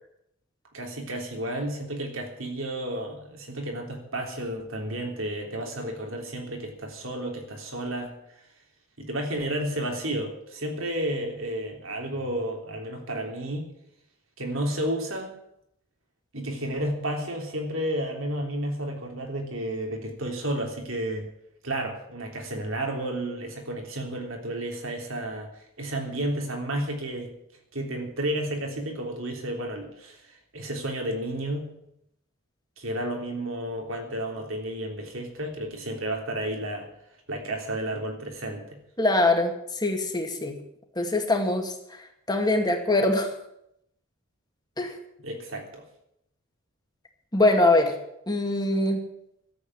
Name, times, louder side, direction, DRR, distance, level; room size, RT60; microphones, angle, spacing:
voice 1, 0.7-8.1 9.0-13.7 14.4-15.3 16.3-21.3 21.6-25.5 25.8-27.3 27.7-30.2 30.5-31.7 32.8-36.9 37.3-38.7 45.2-45.8, right 1 dB, 65° right, 2 dB, 3.4 m, -32 dB
voice 2, 39.0-39.5 39.8-40.5 41.0-41.7 42.3-43.3 44.8-44.9 47.3-47.9 48.3-49.0, left 2 dB, 20° left, 3 dB, 2.1 m, -22 dB
13.0 x 8.5 x 9.8 m, 0.78 s
head